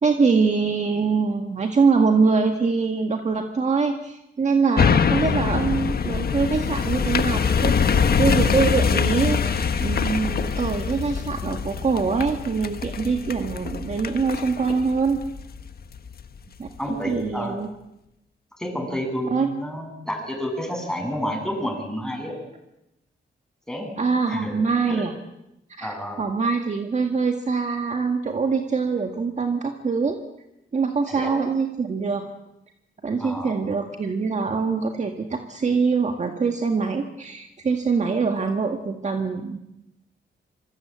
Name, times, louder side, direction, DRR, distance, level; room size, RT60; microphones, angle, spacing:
voice 1, 0.0-15.2 16.6-17.7 19.3-19.5 24.0-25.1 25.8-30.2 30.7-32.2 33.0-39.6, right 4 dB, 35° right, 4 dB, 1.8 m, -24 dB
sound 1, 4.8-16.2 16.7-16.8, left 6 dB, 50° left, 1.4 m, -24 dB
voice 2, 16.8-17.6 18.6-22.3 23.7-23.9 24.3-24.5 24.9-25.0 25.8-26.2 31.1-31.4 33.2-33.6, equal, 5° left, 2 dB, 7.7 m, -30 dB
27.0 x 25.0 x 8.7 m, 0.89 s
wide cardioid pair, 155°, 20 cm